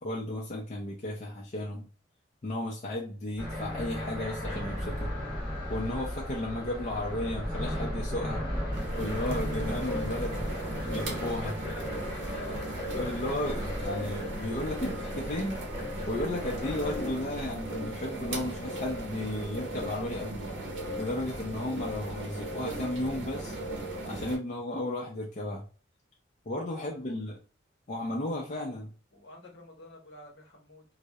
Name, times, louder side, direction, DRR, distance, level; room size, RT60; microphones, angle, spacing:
voice 1, 0.0-1.9 2.4-5.1 5.7-8.4 9.0-10.5 10.8-11.6 12.9-15.6 16.1-20.5 21.0-23.5 24.1-25.6 26.5-27.4 27.9-28.9, left 1 dB, 40° left, -2 dB, 0.4 m, -34 dB
sound 1, 3.4-17.1, equal, 15° right, 1.0 m, -36 dB
sound 2, 8.7-24.4, right 1 dB, 80° right, 0.6 m, -37 dB
voice 2, 11.5-12.7 26.7-27.2 29.1-30.8, left 1 dB, 65° left, 1 dB, 0.8 m, -48 dB
2.2 x 2.0 x 2.7 m, 0.38 s
head